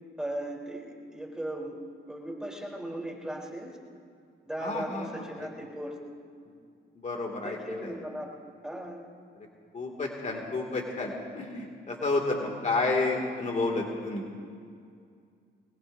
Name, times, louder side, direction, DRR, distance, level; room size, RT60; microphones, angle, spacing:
voice 1, 0.2-0.8 1.1-1.8 2.1-3.8 4.4-6.0 7.4-9.0, right 1 dB, 5° right, -2 dB, 3.7 m, -37 dB
voice 2, 4.6-5.5 7.0-8.0 9.7-14.2, left 3 dB, 40° left, 1 dB, 2.4 m, -31 dB
23.0 x 20.5 x 2.7 m, 2.3 s
cardioid pair, 90°, 20 cm